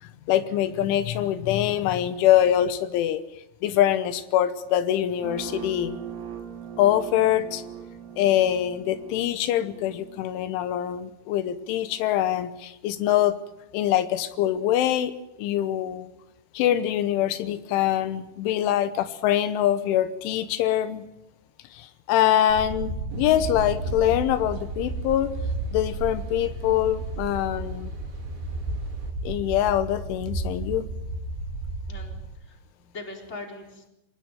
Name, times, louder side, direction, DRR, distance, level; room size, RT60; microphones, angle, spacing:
voice 1, 0.0-3.2 3.6-6.0 6.8-7.6 8.2-13.4 13.7-15.1 15.4-16.1 16.6-21.0 21.7-25.3 25.7-27.9 29.2-30.9, left 11 dB, 85° left, 12 dB, 3.5 m, -24 dB
sound 1, 5.2-10.2, right 9 dB, 85° right, 5.1 m, -40 dB
sound 2, 22.5-32.3, right 2 dB, 60° right, 5.3 m, -33 dB
sound 3, 23.1-29.1, right 2 dB, 40° right, 2.0 m, -43 dB
voice 2, 31.9-33.9, left 2 dB, 15° left, 1 dB, 4.0 m, -41 dB
26.0 x 19.0 x 9.2 m, 0.93 s
omnidirectional pair, 5.4 m